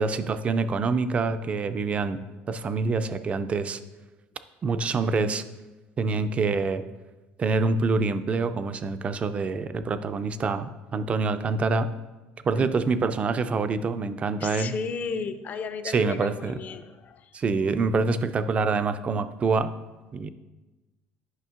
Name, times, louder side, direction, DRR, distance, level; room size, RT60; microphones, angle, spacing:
voice 1, 0.0-2.2 2.5-3.8 4.6-5.4 6.0-6.8 7.4-11.9 12.4-14.7 15.8-16.6 17.3-19.7 20.1-20.3, right 4 dB, 30° right, 11 dB, 0.3 m, -26 dB
voice 2, 14.4-17.3, left 5 dB, 40° left, 9 dB, 0.4 m, -34 dB
9.4 x 5.5 x 2.4 m, 1.1 s
cardioid pair, 125°, 4 cm